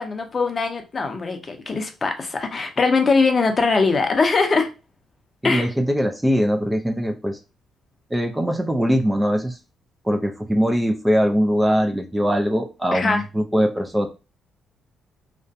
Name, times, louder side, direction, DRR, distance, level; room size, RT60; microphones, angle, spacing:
voice 1, 0.0-4.7 5.4-5.7 12.9-13.2, left 4 dB, 35° left, 0.6 m, -21 dB
voice 2, 5.4-7.4 8.1-9.6 10.1-14.1, equal, 10° right, 0.4 m, -21 dB
2.5 x 2.1 x 2.6 m
cardioid pair, 90°, 0 cm